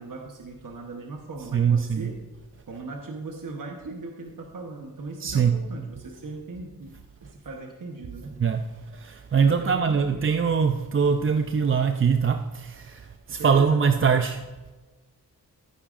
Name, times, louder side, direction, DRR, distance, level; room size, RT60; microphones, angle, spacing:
voice 1, 0.0-2.2 2.7-8.4 9.3-10.4 13.3-14.3, right 3 dB, 55° right, 1.0 m, -38 dB
voice 2, 1.5-2.0 5.2-5.6 8.4-8.6 8.9-14.4, right 6 dB, 35° right, 0.4 m, -22 dB
15.0 x 8.7 x 2.5 m
wide cardioid pair, 135°, 38 cm